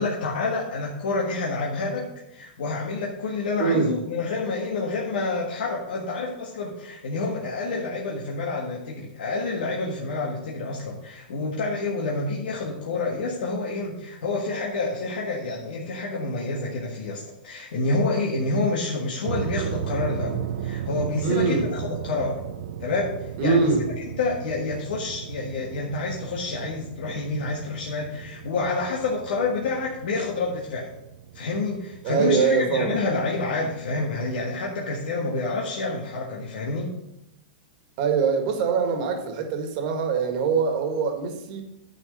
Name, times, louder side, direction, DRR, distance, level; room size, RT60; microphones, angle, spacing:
voice 1, 0.0-22.4 22.8-23.7 24.2-30.9 31.3-36.9, left 3 dB, 80° left, 1.5 m, -28 dB
voice 2, 3.6-3.9 21.2-21.7 23.4-23.9 32.0-33.0 38.0-41.6, right 5 dB, 50° right, 1.7 m, -23 dB
sound 1, 19.2-34.5, right 9 dB, 70° right, 0.6 m, -36 dB
9.8 x 4.3 x 6.5 m
hypercardioid pair, 140°, 5 cm